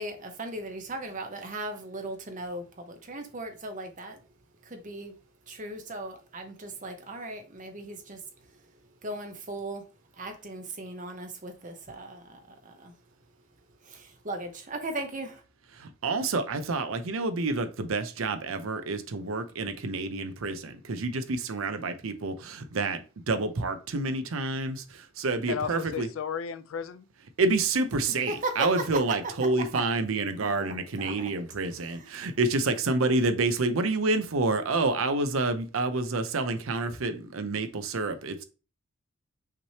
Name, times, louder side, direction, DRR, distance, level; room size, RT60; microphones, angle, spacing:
voice 1, 0.0-4.2 4.6-5.2 5.5-8.2 9.0-9.8 10.2-12.9 13.8-15.4 28.3-28.7 29.7-29.8 30.4-31.4 31.8-32.3, right 2 dB, 35° right, 0.9 m, -38 dB
voice 2, 15.8-23.0 23.3-26.1 27.4-38.4, right 3 dB, 75° right, 0.6 m, -28 dB
voice 3, 25.5-27.1, left 7 dB, 70° left, 0.4 m, -34 dB
5.8 x 3.2 x 2.9 m
head